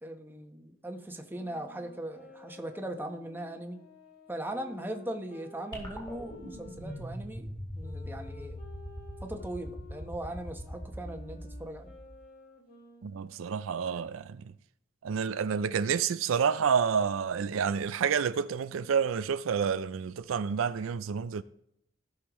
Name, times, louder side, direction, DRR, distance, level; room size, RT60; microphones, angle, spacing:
voice 1, 0.0-3.8 4.3-8.6 9.2-11.9, right 1 dB, 10° right, 1.0 m, -39 dB
sound 1, 1.3-7.1 7.8-13.4, left 2 dB, 50° left, 3.4 m, -53 dB
sound 2, 5.7-12.2, equal, 25° left, 3.7 m, -42 dB
voice 2, 13.0-14.4 15.0-21.4, right 6 dB, 80° right, 0.4 m, -29 dB
16.5 x 6.5 x 3.0 m
head